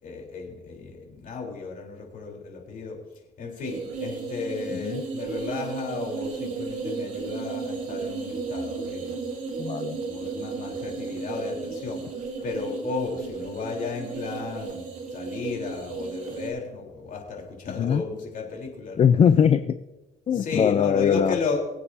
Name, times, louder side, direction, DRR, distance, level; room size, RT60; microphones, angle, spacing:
voice 1, 0.0-3.0 3.4-9.1 10.0-12.0 12.4-19.1 20.3-21.6, left 4 dB, 55° left, 0 dB, 3.9 m, -34 dB
sound 1, 3.6-16.5, right 4 dB, 50° right, 3.7 m, -34 dB
voice 2, 4.7-5.0 9.6-10.0 17.8-18.0 19.0-19.7 20.3-21.4, left 8 dB, 35° left, 10 dB, 0.5 m, -21 dB
24.0 x 8.4 x 2.8 m, 1.0 s
cardioid pair, 110°, 17 cm